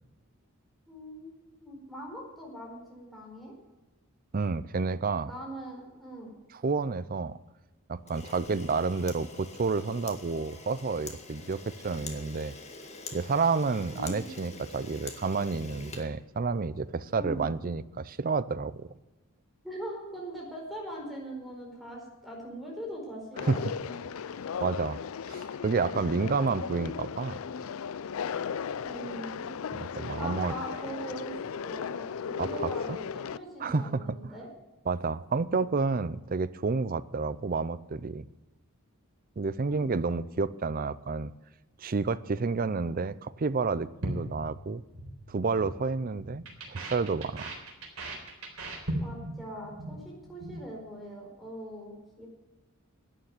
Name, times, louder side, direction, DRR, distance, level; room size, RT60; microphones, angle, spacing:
voice 1, 0.9-3.5 5.3-6.3 13.9-14.3 17.2-17.5 19.6-24.0 28.8-29.5 30.2-31.4 31.6-34.5 39.7-39.9 49.0-52.3, right 1 dB, ahead, -2 dB, 4.7 m, -41 dB
voice 2, 4.3-5.3 6.5-7.4 7.9-12.5 13.1-18.9 23.5-23.6 24.6-25.0 25.3-27.4 29.7-30.5 32.4-33.0 33.6-34.3 34.9-38.2 39.4-41.3 41.8-44.8 45.3-47.5, right 4 dB, 40° right, 17 dB, 0.5 m, -30 dB
Camera, 8.0-16.8, left 4 dB, 30° left, 1.9 m, -46 dB
Conversation, 23.4-33.4, left 7 dB, 65° left, 0.4 m, -36 dB
sound 1, 44.0-45.1 45.4-45.7 46.0-49.4 49.6-50.0 50.2-50.6, right 1 dB, 75° right, 3.8 m, -38 dB
11.5 x 9.3 x 9.4 m, 1.1 s
head